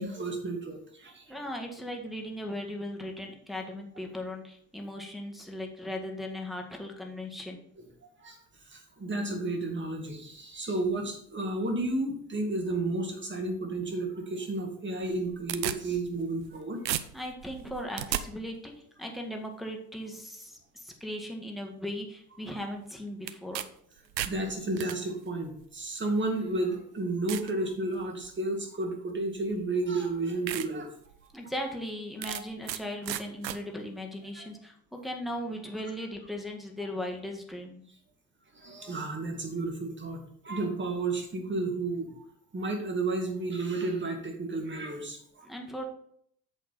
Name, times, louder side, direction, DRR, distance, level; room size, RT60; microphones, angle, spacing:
voice 1, 0.0-1.2 8.2-8.4 8.7-16.8 24.2-30.9 32.2-32.4 34.4-34.5 38.5-40.2 40.4-42.3 42.5-45.5, right 2 dB, 20° right, 3 dB, 2.2 m, -32 dB
voice 2, 1.3-7.6 17.1-23.7 31.3-37.8 45.4-45.8, left 1 dB, ahead, 1 dB, 1.8 m, -38 dB
sound 1, 15.0-16.6 16.9-18.2 23.3-23.7 24.0-25.0 25.8-25.9 26.6-26.7 27.3-27.5 28.0-28.4 29.5-29.6 30.0-30.1 30.5-30.7 31.1-31.2 32.2-32.8 33.1-33.6, right 12 dB, 80° right, 0.6 m, -34 dB
8.4 x 6.4 x 4.2 m, 0.67 s
figure-of-eight pair, 60°, 50 cm